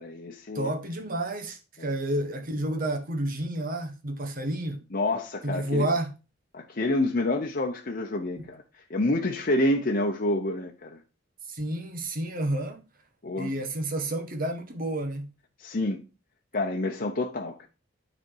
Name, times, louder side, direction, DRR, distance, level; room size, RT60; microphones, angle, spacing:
voice 1, 0.0-0.7 4.9-5.9 6.5-8.6 8.9-11.0 13.2-13.5 15.6-16.0 16.5-17.7, left 2 dB, 50° left, 0.9 m, -28 dB
voice 2, 0.5-4.8 5.4-6.1 8.4-8.5 11.5-12.8 13.4-15.3, right 1 dB, 50° right, 1.3 m, -30 dB
9.4 x 4.3 x 4.6 m
head